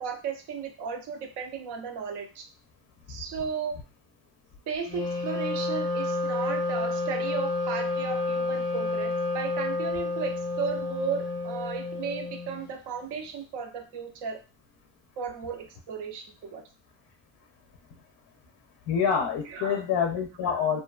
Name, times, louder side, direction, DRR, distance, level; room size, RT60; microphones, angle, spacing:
voice 1, 0.0-2.4 3.1-3.8 4.7-14.4 15.2-16.6 19.5-19.8 20.5-20.6, right 6 dB, 60° right, 5 dB, 0.7 m, -35 dB
Wind instrument woodwind instrument, 4.8-12.7, left 2 dB, 10° left, 0.6 m, -30 dB
voice 2, 18.9-20.8, left 7 dB, 55° left, 4 dB, 0.5 m, -26 dB
2.5 x 2.2 x 2.3 m, 0.32 s
cardioid pair, 115°, 45 cm